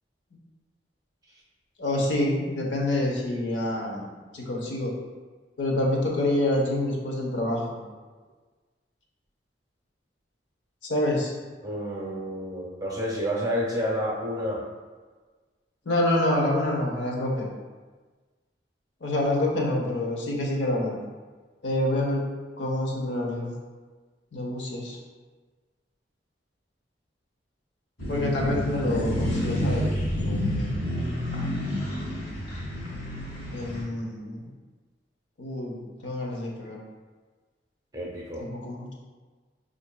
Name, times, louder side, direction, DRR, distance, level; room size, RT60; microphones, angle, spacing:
voice 1, 1.8-4.1 4.3-4.9 5.6-7.8 10.8-11.3 15.8-17.5 19.0-21.0 21.6-22.2 22.6-23.5 24.3-25.0 28.1-29.9 30.1-30.8 33.5-34.5 35.4-36.8 38.4-38.9, left 1 dB, 85° left, -2 dB, 0.8 m, -27 dB
voice 2, 11.6-14.6 37.9-38.5, equal, 20° right, -3 dB, 0.6 m, -29 dB
sound 1, 28.0-33.8, left 1 dB, 55° left, 0.9 m, -29 dB
5.4 x 2.6 x 2.2 m, 1.4 s
head